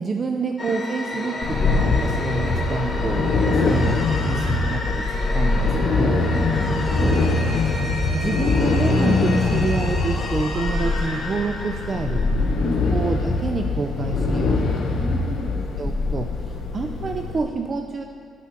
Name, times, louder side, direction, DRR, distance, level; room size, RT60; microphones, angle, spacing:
voice 1, 0.0-5.1 5.3-6.3 6.8-7.4 8.1-12.3 12.9-14.8 15.8-18.0, right 4 dB, 40° right, 5 dB, 0.4 m, -28 dB
sound 1, 0.6-13.1, left 2 dB, 35° left, 1.2 m, -31 dB
sound 2, 1.4-17.4, left 3 dB, 70° left, 0.8 m, -23 dB
voice 2, 3.5-3.9 6.3-6.8 12.4-12.9 14.9-15.6, right 1 dB, 5° right, -3 dB, 1.8 m, -33 dB
7.3 x 6.0 x 5.7 m, 2.2 s
cardioid pair, 90°, 0 cm